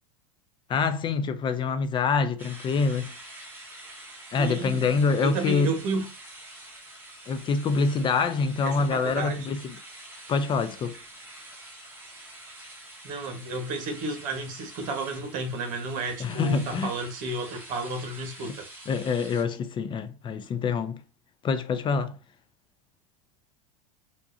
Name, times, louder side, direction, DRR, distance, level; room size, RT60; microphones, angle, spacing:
voice 1, 0.7-3.1 4.3-5.7 7.3-9.7 10.3-10.9 16.2-16.9 18.9-21.0 21.4-22.1, left 5 dB, 30° left, 0.5 m, -26 dB
sound 1, 2.4-19.4, right 1 dB, 10° right, 1.4 m, -46 dB
voice 2, 4.3-4.9 5.2-6.1 8.6-9.5 13.0-18.7, right 3 dB, 50° right, 1.3 m, -32 dB
4.7 x 2.6 x 2.6 m
hypercardioid pair, 105°, 17 cm